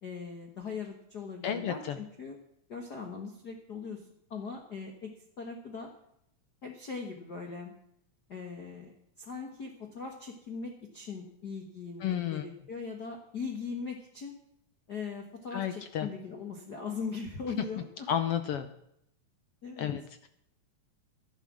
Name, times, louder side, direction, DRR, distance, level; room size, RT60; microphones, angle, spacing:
voice 1, 0.0-2.4 2.7-5.9 6.6-7.7 8.3-8.9 9.2-14.4 14.9-18.1 19.6-19.9, left 5 dB, 40° left, 2 dB, 1.6 m, -40 dB
voice 2, 1.4-2.0 12.0-12.4 15.5-16.1 18.1-18.7 19.8-20.3, left 9 dB, 70° left, 9 dB, 1.4 m, -32 dB
12.5 x 11.0 x 6.2 m, 0.76 s
omnidirectional pair, 3.5 m